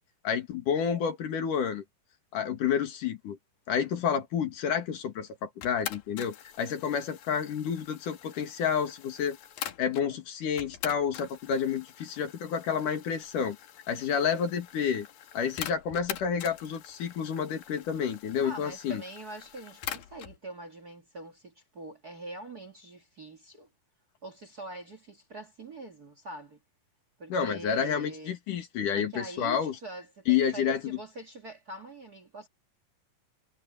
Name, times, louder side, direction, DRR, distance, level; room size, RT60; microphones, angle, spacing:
voice 1, 0.2-1.8 2.3-3.4 3.7-9.4 9.8-13.6 13.9-15.1 15.3-19.0 27.3-29.8 30.3-31.0, left 7 dB, 70° left, 3.5 m, -29 dB
sound 1, 5.6-10.1 10.6-20.4, left 11 dB, 90° left, 3.3 m, -44 dB
voice 2, 18.4-23.7 24.2-26.6 27.2-28.4 29.0-32.5, right 2 dB, 35° right, 1.9 m, -44 dB
omnidirectional pair, 3.9 m